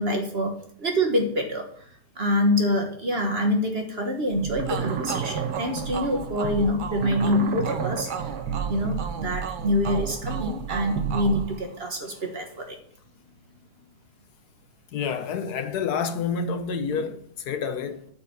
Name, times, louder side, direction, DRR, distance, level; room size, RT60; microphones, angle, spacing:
voice 1, 0.0-1.6 2.2-8.1 8.7-12.8, left 1 dB, 40° right, 1.5 m, -26 dB
sound 1, 4.3-11.4, right 7 dB, 90° right, 1.7 m, -31 dB
sound 2, 4.7-12.2, right 6 dB, 70° right, 0.4 m, -37 dB
voice 2, 14.9-18.1, left 6 dB, 75° left, 1.4 m, -28 dB
9.1 x 5.3 x 7.2 m
omnidirectional pair, 1.7 m